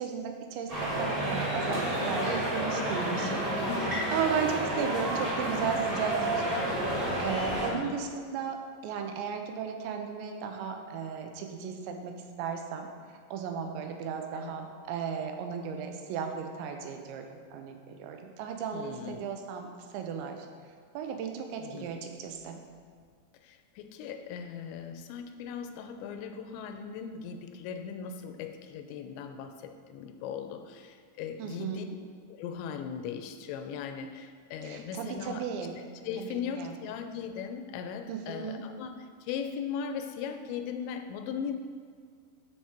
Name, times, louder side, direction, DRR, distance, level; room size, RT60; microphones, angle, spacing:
voice 1, 0.0-3.4 4.1-6.7 7.2-8.6 8.8-12.9 13.3-20.4 20.9-22.6 31.4-31.8 34.6-35.8 36.2-36.7 38.1-38.6, right 7 dB, 85° right, 4 dB, 3.0 m, -35 dB
sound 1, 0.7-7.7, right 1 dB, 25° right, 2.2 m, -30 dB
voice 2, 3.0-4.1 7.7-8.0 14.3-14.6 18.7-19.3 21.6-21.9 23.4-31.9 32.3-35.4 36.0-38.9 39.2-41.5, left 7 dB, 85° left, 7 dB, 2.8 m, -38 dB
13.0 x 4.7 x 4.4 m, 2.1 s
omnidirectional pair, 5.2 m